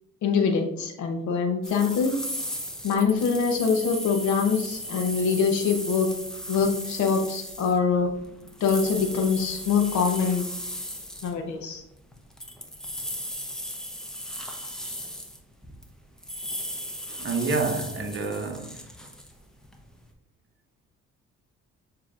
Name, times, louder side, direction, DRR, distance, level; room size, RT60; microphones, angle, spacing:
voice 1, 0.2-2.1 2.8-6.1 6.5-8.1 8.6-10.4 11.2-11.8, left 5 dB, 70° left, 0.8 m, -24 dB
sound 1, 1.6-11.3 12.1-15.9 16.2-20.0, equal, ahead, 0.8 m, -36 dB
voice 2, 17.1-18.9, right 4 dB, 40° right, 0.8 m, -29 dB
6.6 x 2.9 x 2.4 m
cardioid pair, 90°, 30 cm